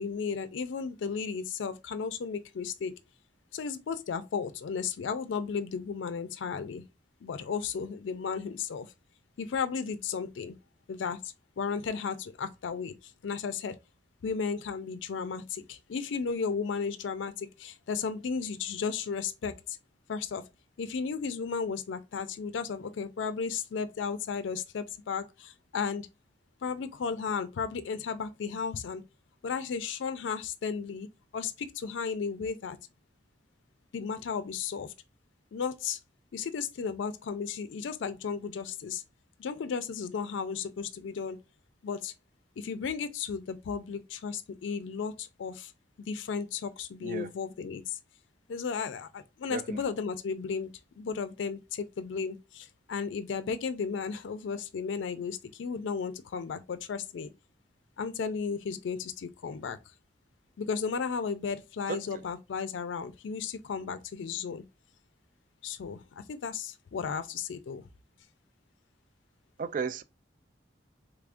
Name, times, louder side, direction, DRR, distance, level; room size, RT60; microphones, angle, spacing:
voice 1, 0.0-3.0 3.5-6.8 7.2-8.9 9.4-10.6 10.9-11.2 11.6-13.8 14.2-19.8 20.1-20.4 20.8-26.1 26.6-29.0 29.4-31.1 31.3-32.8 33.9-34.9 35.5-36.0 36.3-39.0 39.4-41.4 41.8-42.1 42.6-45.7 46.0-48.0 48.5-50.7 51.0-57.3 58.0-59.8 60.6-64.6 65.6-67.8, left 6 dB, 85° left, 0.4 m, -34 dB
voice 2, 69.6-70.0, right 5 dB, 45° right, 0.3 m, -33 dB
3.5 x 3.2 x 2.4 m
head